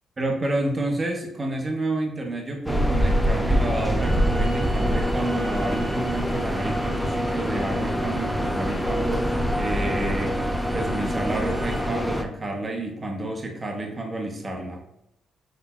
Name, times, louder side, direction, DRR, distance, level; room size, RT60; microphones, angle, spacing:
voice 1, 0.2-10.4 10.7-14.8, right 2 dB, 30° right, 2 dB, 0.7 m, -30 dB
sound 1, 2.7-12.2, equal, ahead, 0.4 m, -25 dB
Bowed string instrument, 3.9-11.9, right 2 dB, 90° right, 1.6 m, -44 dB
5.9 x 3.3 x 2.3 m, 0.82 s
cardioid pair, 90°, 0 cm